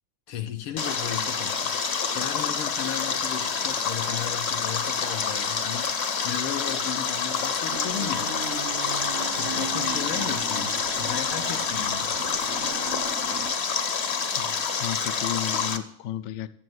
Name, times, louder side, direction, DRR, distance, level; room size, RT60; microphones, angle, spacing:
voice 1, 0.3-1.8 2.1-8.3 9.3-12.3, left 9 dB, 85° left, 4 dB, 1.8 m, -35 dB
Stream, 0.8-15.8, left 6 dB, 50° left, 0.8 m, -27 dB
sound 1, 7.7-13.5, right 6 dB, 70° right, 0.8 m, -38 dB
voice 2, 14.4-16.5, left 12 dB, 70° left, 8 dB, 1.1 m, -33 dB
12.0 x 7.7 x 7.8 m, 0.67 s
omnidirectional pair, 2.3 m